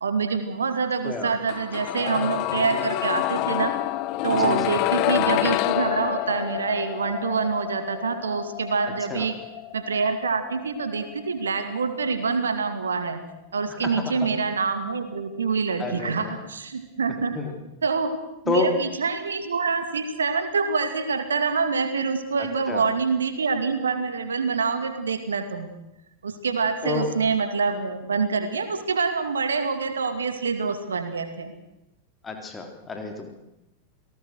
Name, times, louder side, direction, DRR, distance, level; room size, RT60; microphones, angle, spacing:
voice 1, 0.0-3.7 4.2-9.4 9.7-13.2 13.5-17.4 17.8-18.1 18.4-25.7 26.2-31.5, right 5 dB, 70° right, 8 dB, 2.5 m, -26 dB
sound 1, 1.5-13.3 13.6-13.7, left 16 dB, 40° left, 0.9 m, -28 dB
voice 2, 4.3-4.8 9.1-9.3 13.7-14.1 15.8-16.4 17.3-17.6 18.5-18.7 22.4-22.9 26.8-27.1 32.2-33.3, left 3 dB, 15° left, 4 dB, 3.8 m, -30 dB
28.0 x 18.5 x 6.5 m, 0.90 s
figure-of-eight pair, 90°, 0 cm